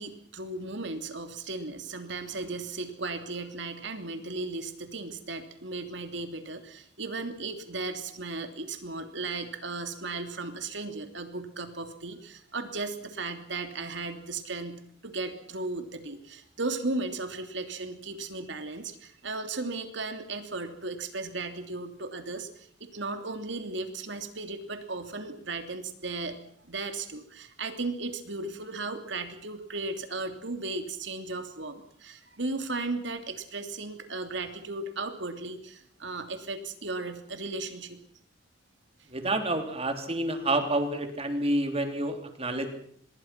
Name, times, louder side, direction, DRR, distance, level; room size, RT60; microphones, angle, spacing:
voice 1, 0.0-26.4 26.6-38.0, right 3 dB, 70° right, 7 dB, 3.0 m, -36 dB
voice 2, 39.1-42.7, right 1 dB, 35° right, 6 dB, 3.5 m, -28 dB
25.0 x 22.0 x 6.0 m, 0.64 s
head